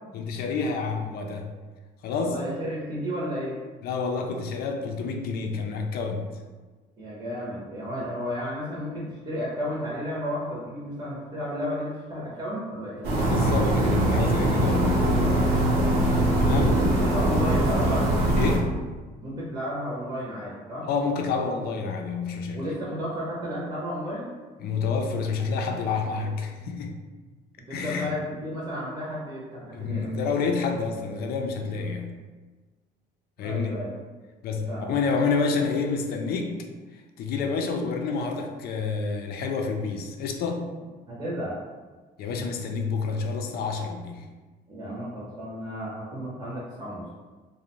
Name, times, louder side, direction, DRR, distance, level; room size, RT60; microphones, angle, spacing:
voice 1, 0.1-1.5 2.0-2.3 3.8-6.2 13.2-14.9 16.4-16.8 18.4-18.7 20.9-22.6 24.6-26.9 27.7-28.1 29.7-32.1 33.4-33.8 34.4-36.6 36.9-40.6 42.2-44.2, left 4 dB, 65° left, 4 dB, 0.4 m, -28 dB
voice 2, 2.1-3.6 7.0-13.0 16.0-18.1 19.2-20.9 22.5-24.3 27.7-30.1 31.7-31.8 33.4-33.9 34.7-35.0 41.1-41.6 44.7-47.1, equal, 25° right, -6 dB, 0.7 m, -33 dB
sound 1, 13.0-18.6, right 1 dB, 75° right, 0.8 m, -22 dB
2.5 x 2.1 x 2.9 m, 1.3 s
cardioid pair, 110°, 17 cm